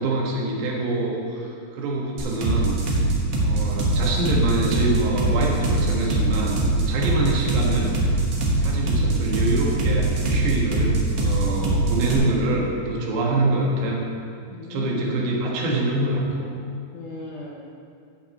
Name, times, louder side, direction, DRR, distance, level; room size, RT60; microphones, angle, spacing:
voice 1, 0.0-3.0 3.4-7.9 8.6-14.0 14.7-16.5, right 2 dB, 90° right, -2 dB, 3.6 m, -25 dB
sound 1, 2.2-12.1, right 2 dB, 70° right, 1.4 m, -22 dB
voice 2, 14.5-15.3 16.9-17.5, left 3 dB, 80° left, -4 dB, 1.8 m, -37 dB
8.3 x 5.9 x 7.5 m, 2.3 s
omnidirectional pair, 4.8 m